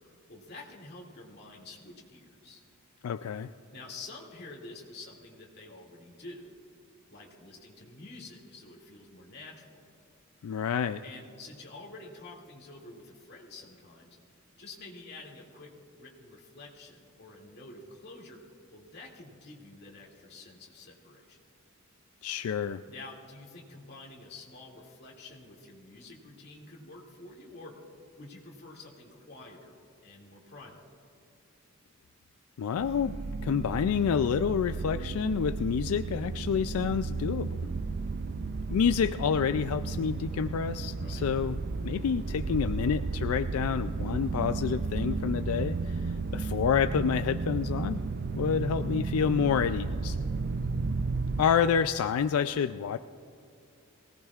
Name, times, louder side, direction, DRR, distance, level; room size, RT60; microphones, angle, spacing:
voice 1, 0.3-2.6 3.7-6.5 7.1-9.8 11.0-14.2 14.6-18.4 18.7-21.4 22.9-27.8 28.2-30.8 41.0-41.2, left 2 dB, 50° left, -2 dB, 2.4 m, -48 dB
voice 2, 3.0-3.5 10.4-11.0 22.2-22.8 32.6-37.6 38.7-41.6 41.8-48.0 48.3-50.2 51.4-53.0, left 7 dB, 85° left, 11 dB, 0.4 m, -28 dB
sound 1, 32.8-51.4, right 3 dB, 45° right, 0.5 m, -33 dB
22.5 x 18.0 x 2.4 m, 2.5 s
head